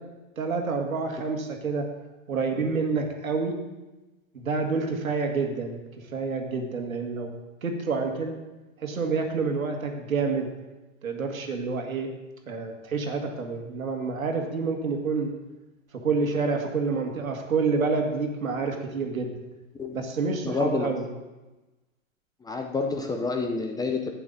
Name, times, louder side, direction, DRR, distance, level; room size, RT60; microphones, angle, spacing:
voice 1, 0.4-1.9 2.3-3.6 4.3-7.3 7.6-8.4 8.8-10.5 11.0-12.1 12.5-15.3 15.9-19.4 19.9-21.1, right 4 dB, 80° right, 3 dB, 1.8 m, -28 dB
voice 2, 20.4-20.9 22.4-24.1, left 3 dB, 10° left, 4 dB, 0.6 m, -28 dB
11.5 x 8.9 x 3.9 m, 1.1 s
hypercardioid pair, 110°, 41 cm